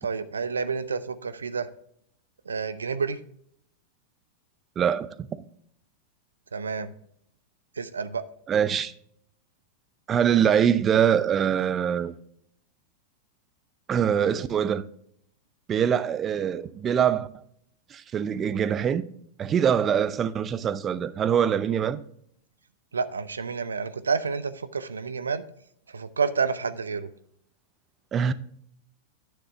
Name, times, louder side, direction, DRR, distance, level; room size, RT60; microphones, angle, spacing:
voice 1, 0.0-1.7 2.5-3.2 6.5-6.9 7.8-8.2 22.9-25.4 25.9-27.1, right 5 dB, 90° right, 0.5 m, -29 dB
voice 2, 4.8-5.3 8.5-8.9 10.1-12.1 13.9-14.8 15.7-17.3 17.9-19.0 19.4-22.0 28.1-28.3, right 8 dB, 30° right, 0.5 m, -23 dB
9.4 x 6.7 x 3.4 m
hypercardioid pair, 100°, 0 cm